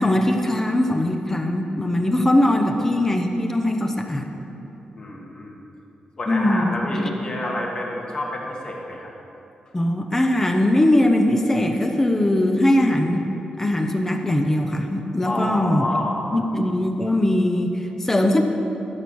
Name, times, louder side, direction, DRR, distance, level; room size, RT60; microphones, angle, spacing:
voice 1, 0.0-4.3 6.3-7.1 9.7-13.2 13.6-15.9 16.3-18.4, left 1 dB, 15° left, 4 dB, 0.7 m, -20 dB
voice 2, 5.0-5.6 6.2-9.1 15.2-16.4, left 1 dB, 35° left, -2 dB, 1.7 m, -29 dB
14.0 x 6.8 x 6.2 m, 2.9 s
wide cardioid pair, 160°, 3 cm